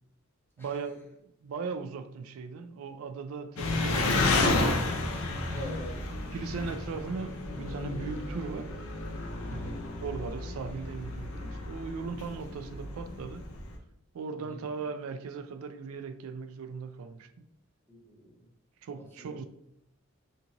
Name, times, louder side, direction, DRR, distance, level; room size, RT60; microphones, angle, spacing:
voice 1, 0.6-1.1 1.4-5.0 6.3-8.9 9.5-13.5 14.1-17.5 18.8-19.4, right 5 dB, 85° right, 0.3 m, -38 dB
Engine, 3.6-13.7, left 2 dB, 85° left, 0.5 m, -31 dB
voice 2, 5.5-6.0 9.5-9.8 14.3-14.6 17.9-18.5 19.0-19.4, right 1 dB, 10° left, 0.7 m, -45 dB
2.6 x 2.5 x 2.8 m
head